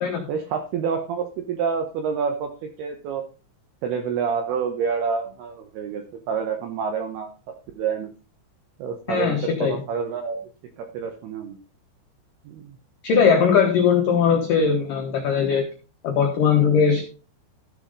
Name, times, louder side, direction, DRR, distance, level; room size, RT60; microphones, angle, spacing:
voice 1, 0.3-3.2 3.8-7.3 7.8-8.1 8.8-10.4 10.8-11.6 12.4-12.8, right 6 dB, 85° right, 6 dB, 2.3 m, -28 dB
voice 2, 9.1-9.8 13.0-15.7 16.0-17.0, left 6 dB, 90° left, 3 dB, 1.9 m, -20 dB
13.5 x 6.6 x 3.9 m, 0.34 s
omnidirectional pair, 5.8 m